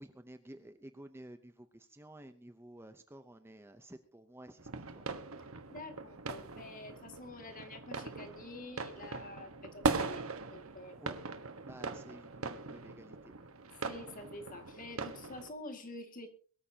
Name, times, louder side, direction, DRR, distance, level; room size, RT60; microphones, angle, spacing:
voice 1, 0.0-5.1 11.0-11.2 11.6-13.3, right 1 dB, 10° right, 8 dB, 0.7 m, -52 dB
sound 1, 4.6-15.5, right 3 dB, 70° right, 1.4 m, -40 dB
voice 2, 5.7-10.2 10.5-11.0 13.9-16.3, left 2 dB, 40° left, 5 dB, 2.1 m, -48 dB
22.0 x 13.5 x 2.9 m, 0.42 s
head